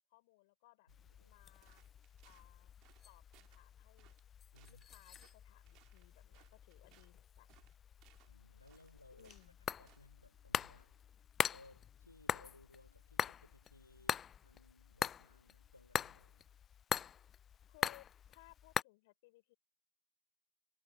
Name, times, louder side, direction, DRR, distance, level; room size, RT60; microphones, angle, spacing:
voice 1, 0.1-0.9 1.3-1.8 2.2-2.7 3.0-4.2 4.7-7.5 9.1-9.7 17.7-19.5, left 21 dB, 50° left, 6.9 m, -64 dB
voice 2, 0.9-1.4 4.5-4.9 8.3-9.4 9.8-11.1 11.4-16.5, left 2 dB, 85° left, 4.0 m, -63 dB
sound 1, 0.9-18.8, left 8 dB, 25° left, 0.3 m, -43 dB
sound 2, 1.6-2.5 2.8-3.1 3.3-3.6 4.0-4.3 4.6-4.8 5.1-5.4 5.7-7.1 7.5-8.3 8.7-9.5 9.9-10.1, right 18 dB, 40° right, 2.6 m, -68 dB
figure-of-eight pair, 90°, 0 cm